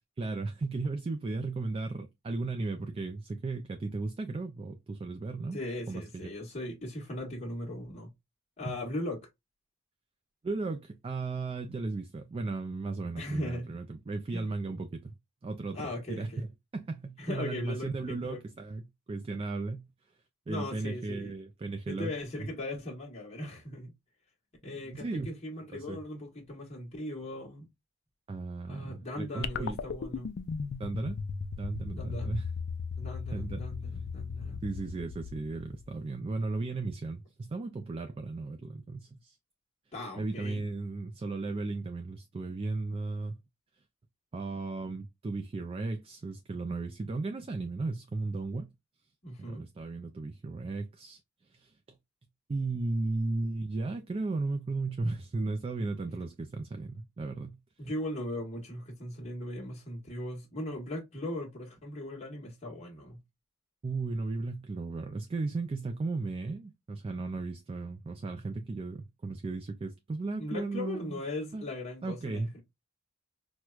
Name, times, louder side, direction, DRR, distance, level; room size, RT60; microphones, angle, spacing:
voice 1, 0.2-5.6 5.9-6.3 8.7-8.8 10.4-15.1 15.4-19.9 20.5-22.1 22.4-22.5 24.6-25.3 25.7-26.0 28.3-29.8 30.8-31.2 31.6-32.4 33.3-33.6 34.6-39.4 40.2-43.4 44.3-48.7 49.4-51.2 51.5-51.7 52.5-57.6 63.8-71.2 71.5-71.7 72.0-72.5, right 3 dB, 25° right, 0.3 m, -35 dB
voice 2, 5.5-8.1 8.6-9.2 13.2-13.7 14.3-14.4 15.7-16.4 17.2-18.4 20.5-21.3 21.9-23.9 24.6-27.7 28.7-30.3 31.9-32.4 33.0-34.6 39.9-40.6 49.2-49.7 57.8-63.2 70.4-72.6, left 1 dB, 30° left, 1.1 m, -38 dB
sound 1, 29.4-35.9, left 5 dB, 50° left, 0.4 m, -37 dB
4.4 x 2.2 x 2.3 m
head